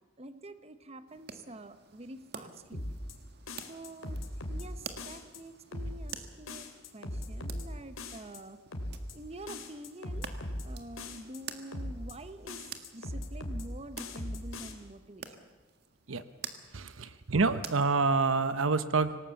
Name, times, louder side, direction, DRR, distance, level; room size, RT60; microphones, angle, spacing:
voice 1, 0.2-2.8 3.7-4.2 4.5-8.6 9.1-10.3 10.6-12.7 12.9-15.5, right 1 dB, 30° right, 11 dB, 1.1 m, -47 dB
sound 1, 1.1-18.5, right 6 dB, 50° right, 1.7 m, -49 dB
sound 2, 2.7-3.1 3.5-4.6 5.0-5.4 5.7-6.1 6.5-7.6 8.0-8.4 8.7-9.1 9.5-10.6 11.0-11.4 11.7-12.1 12.5-13.6 14.0-14.7, left 1 dB, 80° left, 2.9 m, -39 dB
voice 2, 16.7-19.2, right 4 dB, 70° right, 12 dB, 0.9 m, -27 dB
26.0 x 18.5 x 7.2 m, 1.3 s
head